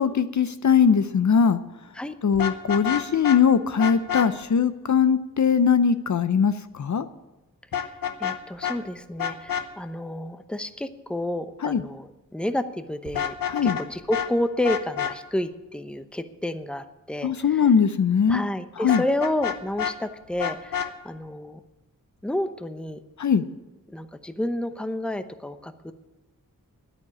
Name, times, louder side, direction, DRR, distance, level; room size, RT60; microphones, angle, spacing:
voice 1, 0.0-1.6 2.2-7.1 11.6-11.8 13.5-13.8 17.2-18.4 18.8-19.0 23.2-23.4, left 7 dB, 55° left, 12 dB, 0.6 m, -21 dB
Vehicle horn car horn honking, 2.3-3.4 3.8-4.3 7.7-8.4 8.6-8.8 9.2-9.6 13.0-13.8 14.1-14.3 14.6-15.1 18.9-19.9 20.4-20.9, left 8 dB, 80° left, 1.0 m, -28 dB
voice 2, 8.2-13.3 13.6-17.7 18.3-21.6 22.2-23.0 23.9-25.9, left 1 dB, 5° left, 10 dB, 0.8 m, -30 dB
9.9 x 8.9 x 9.9 m, 1.1 s
wide cardioid pair, 65°, 34 cm